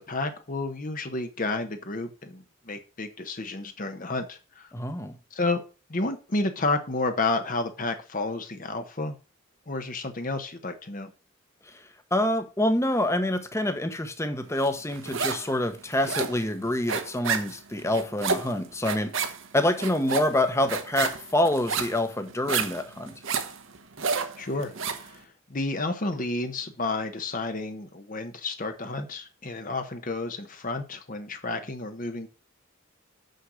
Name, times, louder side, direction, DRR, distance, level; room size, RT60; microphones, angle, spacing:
voice 1, 0.1-4.7 5.3-5.6 5.9-9.2 9.7-11.1 24.4-32.3, left 2 dB, 40° left, 0.9 m, -31 dB
voice 2, 4.7-5.2 12.1-19.1 19.5-23.1, left 1 dB, 15° left, 1.0 m, -26 dB
sound 1, 14.6-15.5 15.8-25.1, right 5 dB, 70° right, 1.1 m, -30 dB
6.6 x 6.4 x 6.3 m
head